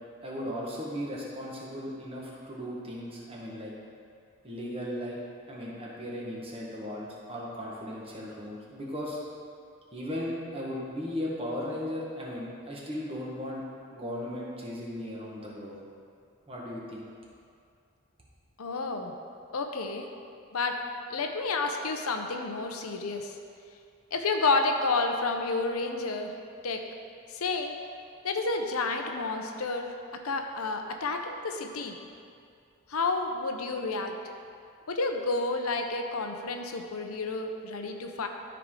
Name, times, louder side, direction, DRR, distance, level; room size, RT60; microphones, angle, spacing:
voice 1, 0.2-3.7 4.4-5.2 5.5-9.2 9.9-13.6 13.9-15.7 16.5-17.1, equal, 25° right, -4 dB, 1.4 m, -36 dB
voice 2, 18.6-19.1 19.5-20.1 20.5-20.8 21.1-23.3 24.1-26.3 26.6-26.8 27.3-27.7 28.2-29.9 30.2-31.9 32.9-34.1 34.9-38.3, left 3 dB, 85° left, 4 dB, 0.8 m, -30 dB
13.0 x 4.8 x 3.8 m, 2.4 s
head